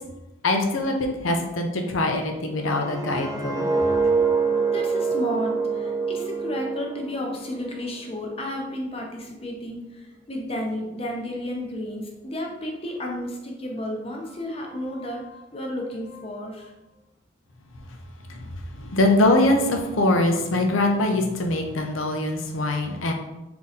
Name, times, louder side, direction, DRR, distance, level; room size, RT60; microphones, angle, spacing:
voice 1, 0.4-3.7 18.3-18.4 18.7-23.1, left 2 dB, 80° left, 4 dB, 0.7 m, -23 dB
sound 1, 2.7-7.7 8.1-8.4, right 4 dB, 15° right, 0.3 m, -25 dB
voice 2, 4.5-16.7, left 1 dB, 30° left, 0 dB, 0.7 m, -32 dB
3.7 x 2.8 x 4.1 m, 0.99 s
head